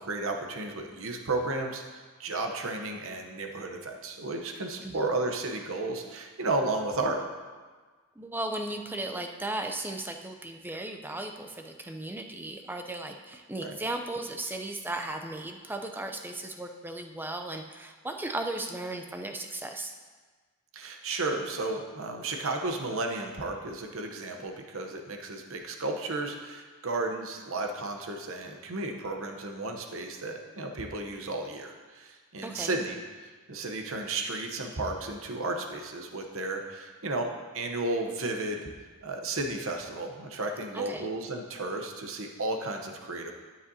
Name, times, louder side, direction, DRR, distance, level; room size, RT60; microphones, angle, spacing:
voice 1, 0.0-1.8 2.2-7.2 13.6-13.8 20.7-38.7 39.0-43.3, right 2 dB, 65° right, 3 dB, 0.9 m, -33 dB
voice 2, 8.2-19.9 32.4-32.8 40.7-41.1, right 2 dB, 10° right, 4 dB, 0.5 m, -36 dB
12.5 x 7.3 x 2.8 m, 1.4 s
head